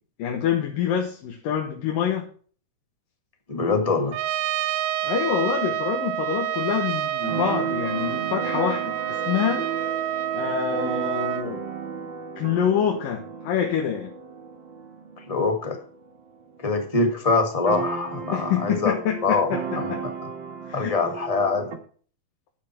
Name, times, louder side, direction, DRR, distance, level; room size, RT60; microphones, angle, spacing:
voice 1, 0.2-2.2 5.0-9.7 10.3-11.6 12.4-14.1 18.3-20.0 20.7-20.9, left 8 dB, 80° left, 2 dB, 3.0 m, -26 dB
voice 2, 3.5-4.2 15.3-15.8 16.6-18.9 19.2-19.5 19.8-19.9 20.7-21.7, left 3 dB, 25° left, 4 dB, 0.8 m, -23 dB
Trumpet, 4.1-11.5, right 12 dB, 80° right, 2.3 m, -28 dB
Keyboard (musical), 7.2-16.8 17.0-17.1 17.3-21.8, right 5 dB, 45° right, 1.6 m, -34 dB
10.5 x 9.1 x 4.4 m, 0.43 s
omnidirectional pair, 4.0 m